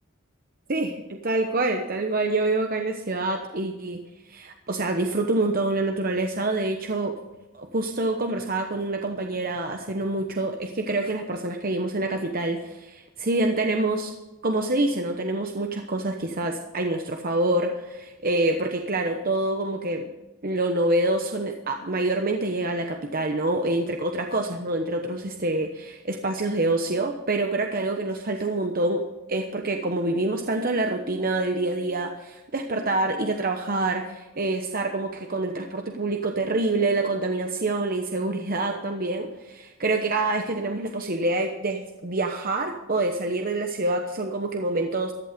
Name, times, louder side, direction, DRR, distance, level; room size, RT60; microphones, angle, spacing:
voice 1, 0.7-4.0 4.3-7.1 7.5-14.1 14.4-20.1 20.4-29.0 29.3-45.1, right 2 dB, 45° right, 4 dB, 1.0 m, -26 dB
15.0 x 11.0 x 5.1 m, 1.1 s
head